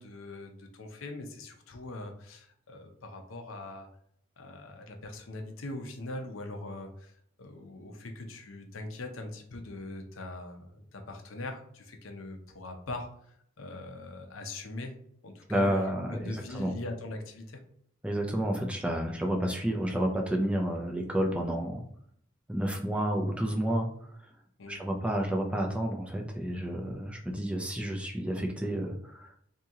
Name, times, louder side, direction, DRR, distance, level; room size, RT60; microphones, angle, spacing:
voice 1, 0.0-3.9 4.4-14.9 15.2-17.6 24.6-24.8, left 2 dB, 75° left, 5 dB, 0.7 m, -41 dB
voice 2, 15.5-16.7 18.0-21.8 22.5-23.9 24.7-29.3, right 1 dB, 5° right, 1 dB, 0.4 m, -30 dB
2.9 x 2.8 x 3.6 m, 0.66 s
head